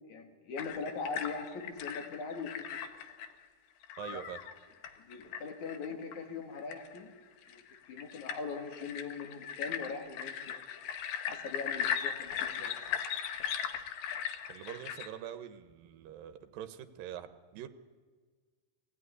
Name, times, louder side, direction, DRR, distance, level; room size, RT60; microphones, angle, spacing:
voice 1, 0.1-2.7 5.0-7.1 7.5-7.6 7.9-10.6 11.3-12.8, left 4 dB, 60° left, 4 dB, 3.4 m, -41 dB
sound 1, 0.6-3.3 3.8-7.2 7.5-15.1, left 8 dB, 75° left, 2.8 m, -38 dB
voice 2, 4.0-4.4 14.5-17.7, right 10 dB, 80° right, 10 dB, 2.7 m, -44 dB
22.0 x 16.0 x 9.7 m, 1.5 s
omnidirectional pair, 4.1 m